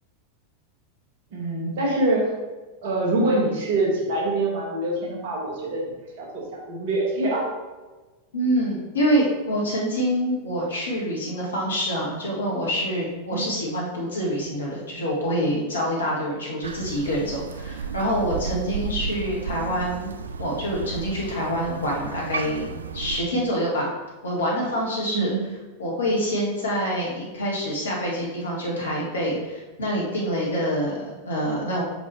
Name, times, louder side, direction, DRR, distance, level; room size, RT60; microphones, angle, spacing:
voice 1, 1.3-2.3 2.8-5.8 6.2-7.5 13.3-13.5 19.1-19.2 25.1-25.4, right 2 dB, 50° right, -2 dB, 1.7 m, -25 dB
voice 2, 8.3-23.9 24.2-25.3 25.8-31.8, equal, 70° left, -3 dB, 1.8 m, -26 dB
Crow, 16.6-23.2, right 5 dB, 70° right, 0.4 m, -33 dB
6.0 x 5.0 x 3.4 m, 1.2 s
figure-of-eight pair, 90°, 0 cm